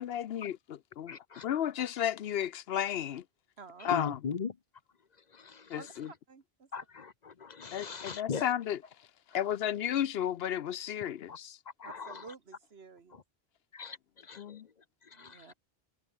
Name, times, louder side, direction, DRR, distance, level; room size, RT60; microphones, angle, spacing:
voice 1, 0.0-1.2 1.4-3.2 3.8-4.2 5.7-6.1 7.7-8.8 9.3-11.6 14.4-14.7, left 10 dB, 75° left, 0.9 m, -33 dB
voice 2, 1.1-1.5 1.8-1.9 3.8-4.5 5.3-5.8 6.7-8.5 11.3-11.4 11.8-12.3 13.7-14.6 15.0-15.5, left 6 dB, 45° left, 0.9 m, -40 dB
voice 3, 3.6-4.0 5.7-6.7 11.8-13.2 15.1-15.5, right 5 dB, 80° right, 1.9 m, -51 dB
omnidirectional pair, 1.1 m